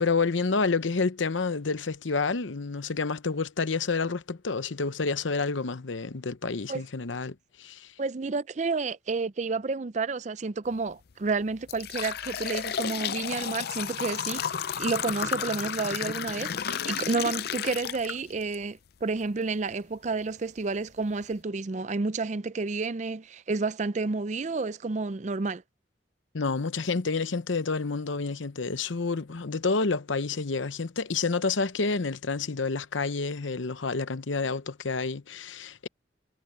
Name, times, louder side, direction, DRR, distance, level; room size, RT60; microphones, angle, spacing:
voice 1, 0.0-7.9 26.3-35.9, left 4 dB, 85° left, 0.9 m, -29 dB
voice 2, 8.0-14.4 14.8-25.6, right 3 dB, 40° right, 0.5 m, -30 dB
sound 1, 10.7-10.9 11.4-18.6 19.0-19.1 20.0-20.1 20.6-20.7 21.1-21.3, left 8 dB, 55° left, 0.5 m, -32 dB
head